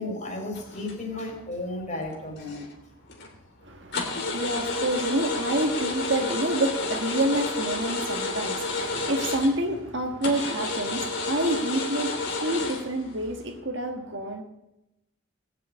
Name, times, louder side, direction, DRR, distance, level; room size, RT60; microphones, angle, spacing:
voice 1, 0.0-2.7, left 2 dB, 35° left, 2 dB, 4.1 m, -34 dB
sound 1, 0.5-1.4 1.8-2.7 3.1-3.4 3.9-9.8 10.2-13.5, left 3 dB, 50° left, 3.2 m, -31 dB
voice 2, 3.6-14.4, right 1 dB, 55° right, 3 dB, 1.5 m, -28 dB
19.5 x 7.6 x 8.4 m, 0.90 s
head